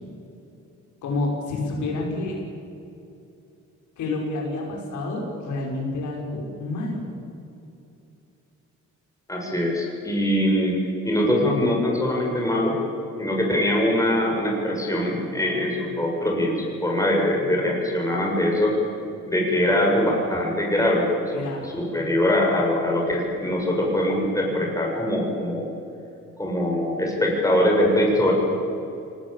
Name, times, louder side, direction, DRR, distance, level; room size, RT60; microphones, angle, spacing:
voice 1, 1.0-2.4 4.0-7.0 21.3-21.7, left 2 dB, 75° left, -2 dB, 6.4 m, -29 dB
voice 2, 9.3-10.7 11.1-12.8 13.2-18.8 19.3-25.7 26.4-28.3, left 1 dB, 10° left, -1 dB, 7.0 m, -22 dB
24.0 x 19.5 x 8.8 m, 2.7 s
cardioid pair, 90°, 30 cm